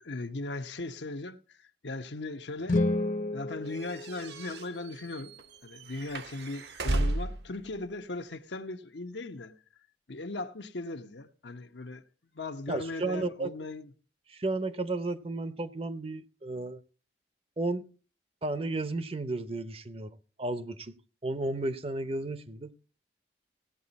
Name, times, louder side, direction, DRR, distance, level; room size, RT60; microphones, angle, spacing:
voice 1, 0.0-2.8 3.3-5.3 5.6-9.5 10.1-12.0 12.3-13.9, left 2 dB, 80° left, 1.0 m, -38 dB
sound 1, 2.6-4.8, left 2 dB, 45° left, 0.8 m, -31 dB
sound 2, 3.7-7.5, right 1 dB, 70° right, 1.0 m, -34 dB
voice 2, 12.7-13.5 14.3-16.8 17.6-17.9 18.4-21.0 21.2-22.7, right 2 dB, 30° right, 0.7 m, -33 dB
17.0 x 8.9 x 4.1 m
head